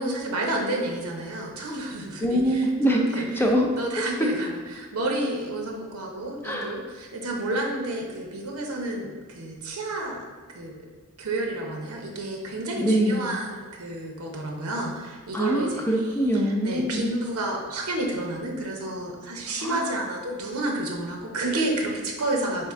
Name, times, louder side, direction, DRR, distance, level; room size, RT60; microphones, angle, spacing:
voice 1, 0.0-3.2 3.7-10.2 10.5-10.8 11.2-15.8 16.6-22.7, right 2 dB, 80° right, 0 dB, 0.7 m, -30 dB
voice 2, 2.2-3.7 4.2-4.3 6.4-6.8 12.8-13.3 15.3-17.1 19.6-20.0, equal, 10° left, 1 dB, 0.5 m, -24 dB
3.6 x 3.3 x 4.3 m, 1.4 s
head